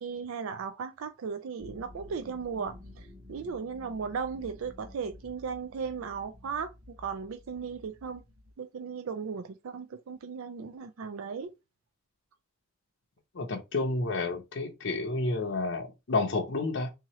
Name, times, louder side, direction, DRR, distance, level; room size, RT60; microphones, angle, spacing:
voice 1, 0.0-8.2 8.6-11.5, right 6 dB, 75° right, 0.4 m, -36 dB
sound 1, 1.6-8.5, left 2 dB, 25° right, 1.2 m, -51 dB
voice 2, 13.3-16.9, left 3 dB, 55° left, 0.5 m, -30 dB
3.6 x 2.8 x 3.0 m
head